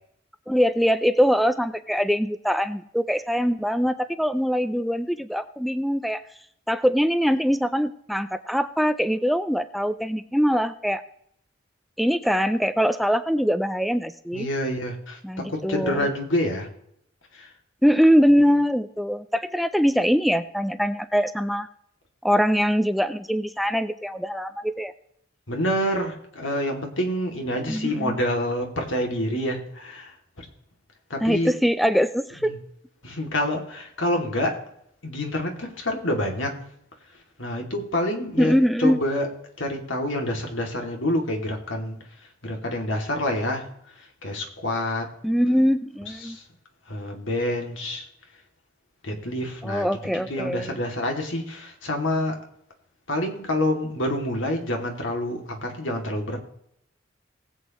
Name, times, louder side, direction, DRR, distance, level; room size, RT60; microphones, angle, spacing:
voice 1, 0.5-6.2 6.7-11.0 12.0-14.5 15.2-16.0 17.8-21.7 22.2-24.9 27.7-28.2 31.2-32.5 38.4-39.0 45.2-46.4 49.6-50.7, equal, ahead, 11 dB, 0.4 m, -22 dB
voice 2, 14.3-15.2 15.5-16.7 17.3-17.5 25.5-30.5 31.1-31.5 32.4-32.6 33.0-34.6 35.0-36.6 37.4-38.5 38.8-39.3 39.6-42.0 42.4-43.7 44.0-45.1 46.2-46.4 46.9-48.1 49.0-52.4 53.1-56.4, left 1 dB, 80° left, 2 dB, 2.5 m, -27 dB
20.0 x 8.1 x 3.1 m, 0.72 s
head